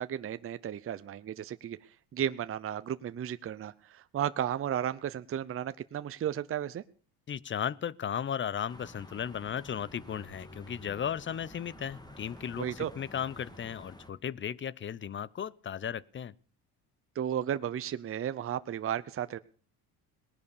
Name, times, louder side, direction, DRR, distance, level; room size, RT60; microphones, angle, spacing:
voice 1, 0.0-1.8 2.1-6.8 12.6-12.9 17.2-19.4, right 10 dB, 35° right, 0.7 m, -34 dB
voice 2, 7.3-16.3, left 8 dB, 30° left, 0.7 m, -35 dB
sound 1, 8.7-14.1, left 1 dB, 10° left, 2.4 m, -50 dB
19.0 x 10.5 x 6.7 m
cardioid pair, 100°, 40 cm